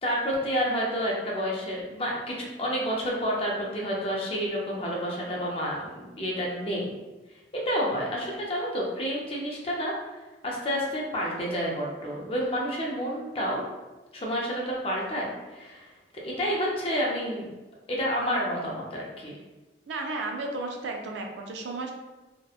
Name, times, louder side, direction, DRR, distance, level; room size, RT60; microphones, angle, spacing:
voice 1, 0.0-6.9 7.5-9.9 10.4-13.6 14.1-15.9 16.2-17.5 17.9-19.4, equal, 30° left, -3 dB, 0.5 m, -29 dB
voice 2, 19.9-21.9, right 2 dB, 80° right, 2 dB, 0.4 m, -33 dB
2.8 x 2.2 x 2.3 m, 1.1 s
head